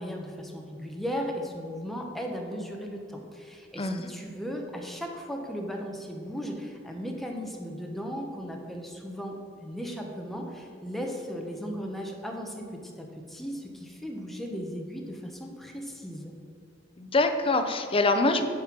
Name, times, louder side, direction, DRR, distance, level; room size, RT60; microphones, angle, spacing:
voice 1, 0.0-9.3 9.6-12.7 13.0-16.3, equal, ahead, 1 dB, 0.9 m, -36 dB
voice 2, 17.0-18.4, left 2 dB, 30° left, 7 dB, 0.6 m, -24 dB
9.5 x 4.3 x 6.0 m, 2.3 s
head